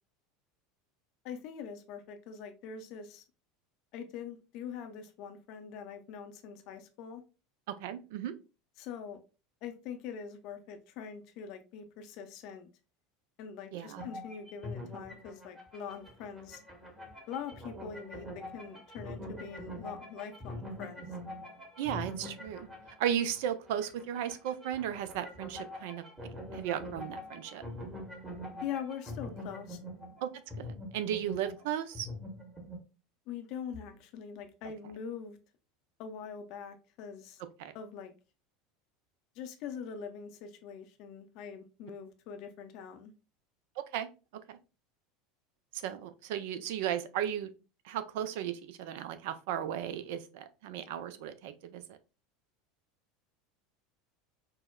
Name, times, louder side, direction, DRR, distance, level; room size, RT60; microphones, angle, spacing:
voice 1, 1.2-3.2 3.9-7.2 8.8-9.2 9.6-12.7 13.4-16.6 17.3-21.1 28.6-29.8 33.3-35.4 36.0-37.4 37.7-38.1 39.4-43.1, left 7 dB, 50° left, 7 dB, 0.5 m, -43 dB
voice 2, 7.8-8.3 13.7-14.0 21.8-22.7 23.0-26.1 26.5-27.6 30.2-30.3 30.6-32.1 37.6-37.7 43.8-44.1 44.5-44.6 45.7-47.5 47.8-52.0, right 10 dB, 60° right, 10 dB, 0.3 m, -35 dB
sound 1, 14.0-32.8, left 1 dB, 15° right, 1.1 m, -44 dB
4.4 x 2.0 x 2.2 m, 0.32 s
figure-of-eight pair, 75°, 0 cm